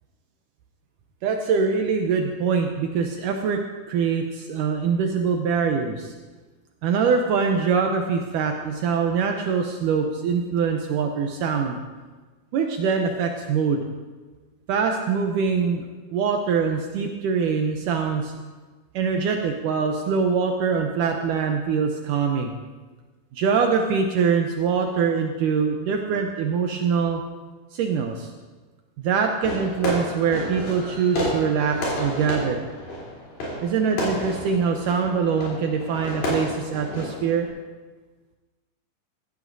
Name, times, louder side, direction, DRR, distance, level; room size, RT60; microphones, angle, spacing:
voice 1, 1.2-3.6 3.9-6.1 6.8-11.8 12.5-13.8 14.7-15.9 16.1-18.3 19.0-22.5 23.3-27.2 27.7-28.3 29.0-32.6 33.6-37.5, right 6 dB, 75° right, 4 dB, 2.0 m, -23 dB
Fireworks, 29.4-37.5, equal, 70° left, 5.3 m, -31 dB
16.0 x 14.0 x 2.7 m, 1.3 s
omnidirectional pair, 4.3 m